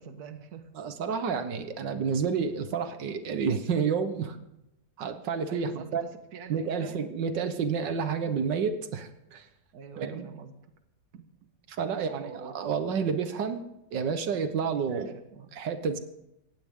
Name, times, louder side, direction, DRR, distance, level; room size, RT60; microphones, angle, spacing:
voice 1, 0.0-0.7 5.5-7.0 9.7-10.7 11.1-11.5 11.8-12.6 14.9-15.6, right 6 dB, 60° right, 8 dB, 1.7 m, -45 dB
voice 2, 0.8-4.4 5.0-6.0 6.5-9.5 10.0-10.3 11.7-13.6 13.9-15.1 15.5-16.0, right 6 dB, 85° right, 9 dB, 1.8 m, -30 dB
19.0 x 16.0 x 3.7 m, 0.87 s
omnidirectional pair, 1.9 m